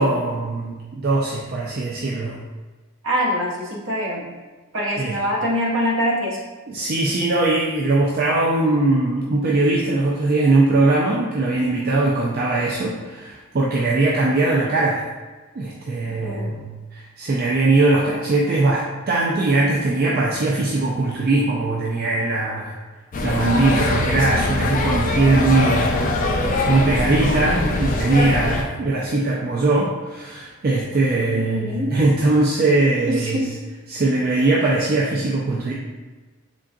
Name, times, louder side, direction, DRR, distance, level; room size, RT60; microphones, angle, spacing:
voice 1, 0.0-2.4 5.0-5.2 6.7-15.1 15.6-22.7 23.2-26.0 26.7-33.4 33.9-35.7, right 2 dB, 45° right, -4 dB, 0.3 m, -20 dB
voice 2, 3.0-4.3 4.7-6.4 16.0-16.5 23.4-23.9 31.3-31.9 33.1-33.5, equal, 60° right, -3 dB, 0.8 m, -24 dB
sound 1, 23.1-28.6, left 2 dB, 35° left, 0.3 m, -22 dB
3.8 x 3.6 x 2.3 m, 1.3 s
head